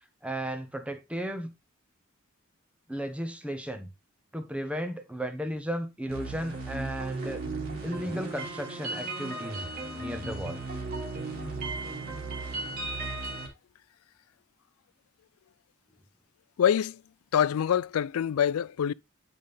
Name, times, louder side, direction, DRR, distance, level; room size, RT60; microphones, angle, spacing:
voice 1, 0.2-1.5 2.9-3.9 4.3-7.4 7.8-9.7 10.0-10.6, equal, 5° right, 0.9 m, -34 dB
sound 1, 6.1-13.5, right 3 dB, 45° right, 2.4 m, -36 dB
voice 2, 16.6-17.0 17.3-18.9, left 8 dB, 90° left, 0.3 m, -25 dB
8.7 x 5.4 x 3.5 m
head